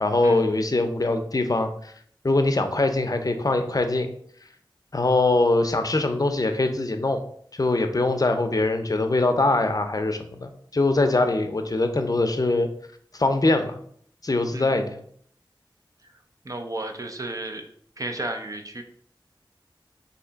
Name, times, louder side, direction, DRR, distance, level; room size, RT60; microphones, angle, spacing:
voice 1, 0.0-1.9 2.2-4.1 4.9-7.2 7.5-12.7 13.1-13.8 14.2-15.0, left 2 dB, 45° left, 6 dB, 0.5 m, -23 dB
voice 2, 16.4-17.6 18.0-18.8, right 2 dB, 40° right, 4 dB, 0.6 m, -33 dB
3.3 x 2.8 x 3.9 m, 0.62 s
wide cardioid pair, 45°, 9 cm